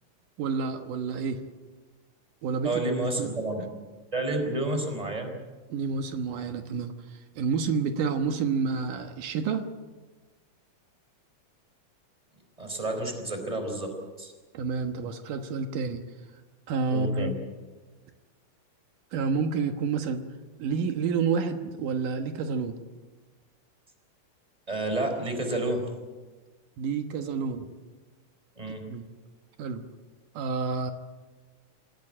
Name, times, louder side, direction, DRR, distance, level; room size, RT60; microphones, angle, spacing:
voice 1, 0.4-1.4 2.4-2.8 3.2-3.3 5.7-9.7 14.5-16.0 16.7-17.3 19.1-20.2 20.6-22.8 26.8-27.7 28.8-29.1 29.6-29.8 30.3-30.9, right 5 dB, 80° right, 6 dB, 2.8 m, -29 dB
voice 2, 2.6-3.6 4.1-5.3 12.6-14.3 16.9-17.3 24.7-25.8 28.6-28.8, right 2 dB, 10° right, 5 dB, 4.1 m, -30 dB
26.5 x 16.5 x 8.9 m, 1.3 s
omnidirectional pair, 3.7 m